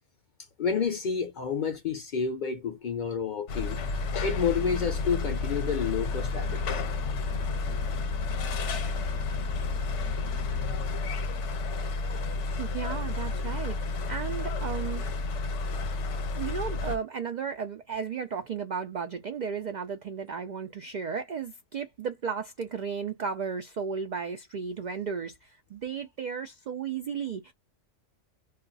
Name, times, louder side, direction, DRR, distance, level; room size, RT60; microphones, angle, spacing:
voice 1, 0.6-3.8 4.2-6.8, left 6 dB, 55° left, 0.5 m, -30 dB
sound 1, 3.5-17.0, left 3 dB, 75° left, 1.0 m, -31 dB
voice 2, 11.9-15.1 16.3-27.5, right 6 dB, 75° right, 0.4 m, -34 dB
2.3 x 2.2 x 3.8 m
omnidirectional pair, 1.3 m